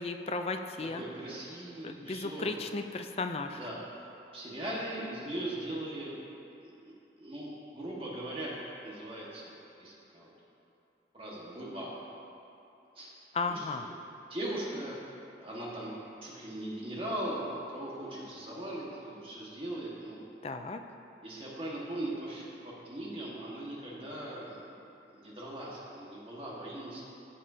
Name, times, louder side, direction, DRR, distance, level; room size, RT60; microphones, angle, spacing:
voice 1, 0.0-1.0 1.8-3.6 13.3-13.9 20.4-20.8, left 3 dB, 35° left, 7 dB, 0.4 m, -35 dB
voice 2, 0.9-2.5 3.5-3.8 4.3-6.1 6.6-9.5 9.8-10.3 11.1-12.0 12.9-13.1 13.5-13.9 14.3-14.9 15.4-15.9 16.2-20.2 21.2-24.7 25.1-27.0, right 1 dB, 30° right, -5 dB, 1.6 m, -39 dB
14.0 x 7.4 x 2.8 m, 2.8 s
head